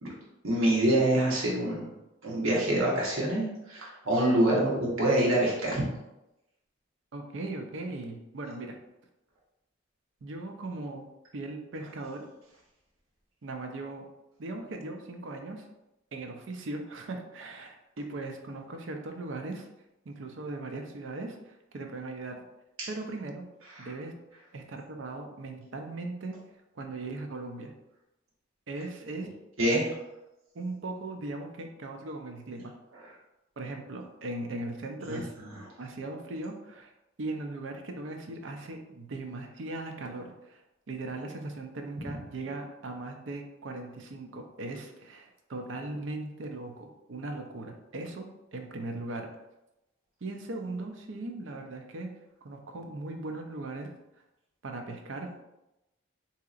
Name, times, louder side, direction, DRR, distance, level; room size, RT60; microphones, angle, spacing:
voice 1, 0.4-1.9 2.2-5.8 22.8-22.9 23.8-23.9 29.6-29.9 35.1-35.2, right 1 dB, 85° right, -4 dB, 1.0 m, -26 dB
voice 2, 7.1-8.8 10.2-11.1 11.3-12.2 13.4-14.1 14.4-15.7 16.1-19.7 20.1-22.4 22.9-23.4 23.8-24.1 24.5-26.4 26.8-27.7 28.7-29.3 30.5-32.7 33.6-35.3 35.8-36.9 37.2-40.6 40.9-49.3 50.2-52.1 52.4-53.9 54.6-55.3, right 2 dB, 60° right, 4 dB, 0.5 m, -38 dB
3.9 x 2.8 x 2.4 m, 0.92 s
head